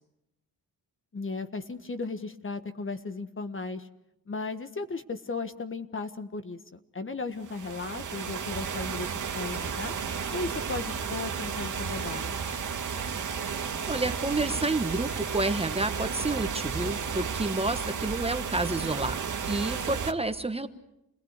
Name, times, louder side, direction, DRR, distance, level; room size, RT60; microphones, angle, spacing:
voice 1, 1.1-3.9 4.3-9.9 10.3-12.4, left 3 dB, 35° left, 10 dB, 1.5 m, -36 dB
sound 1, 7.4-20.1, right 6 dB, 55° right, 2.1 m, -33 dB
sound 2, 10.7-17.4, left 4 dB, 65° left, 2.4 m, -51 dB
voice 2, 13.9-19.2 19.5-20.7, right 2 dB, 15° right, 9 dB, 1.3 m, -29 dB
29.0 x 19.0 x 8.3 m, 0.86 s
cardioid pair, 85°, 37 cm